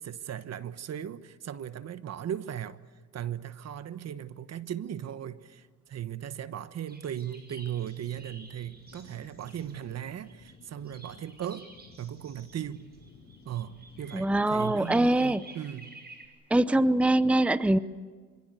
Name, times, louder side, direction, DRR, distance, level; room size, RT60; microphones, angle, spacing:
voice 1, 0.0-2.8 3.1-11.7 12.0-12.9 13.4-15.9, right 10 dB, 55° right, 14 dB, 1.2 m, -37 dB
sound 1, 6.9-10.5 10.9-16.3, right 2 dB, 30° right, 7.1 m, -52 dB
sound 2, 8.2-15.1, left 4 dB, 65° left, 6.5 m, -55 dB
voice 2, 14.1-15.4 16.5-17.8, right 1 dB, 5° right, 15 dB, 0.7 m, -23 dB
26.0 x 25.5 x 8.1 m, 1.5 s
cardioid pair, 90°, 30 cm